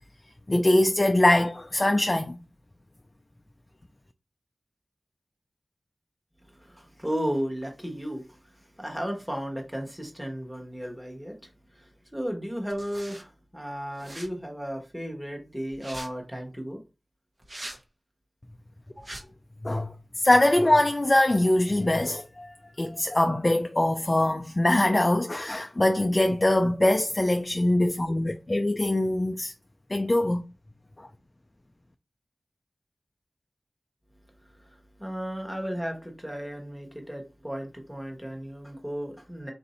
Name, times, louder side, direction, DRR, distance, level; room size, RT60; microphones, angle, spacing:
voice 1, 0.5-2.4 19.6-19.9 20.2-29.5 29.9-30.4 31.0-31.1, left 1 dB, 30° left, 0.3 m, -23 dB
voice 2, 6.4-16.8 18.9-19.2 34.4-39.5, equal, 5° right, 1.1 m, -35 dB
sound 1, 12.7-13.2 14.0-14.3 15.7-16.1 17.4-17.8 19.0-19.2, right 1 dB, 40° right, 0.9 m, -41 dB
3.9 x 2.6 x 4.1 m
wide cardioid pair, 65°, 0 cm